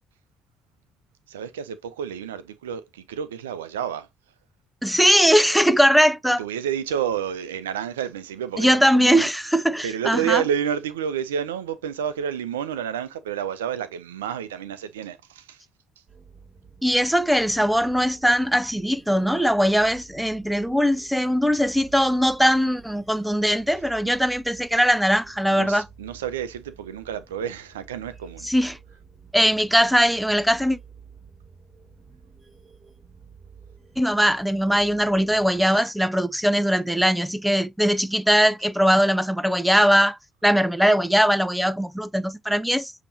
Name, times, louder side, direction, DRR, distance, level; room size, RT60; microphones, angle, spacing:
voice 1, 1.3-4.1 6.4-9.3 9.8-15.6 25.5-28.5, right 9 dB, 90° right, 0.4 m, -29 dB
voice 2, 4.8-6.4 8.6-10.4 16.8-25.9 28.4-28.8 29.3-30.8 34.0-42.9, equal, ahead, 0.6 m, -20 dB
sound 1, 16.1-35.7, right 6 dB, 40° right, 2.9 m, -50 dB
6.8 x 2.8 x 2.6 m
hypercardioid pair, 50°, 0 cm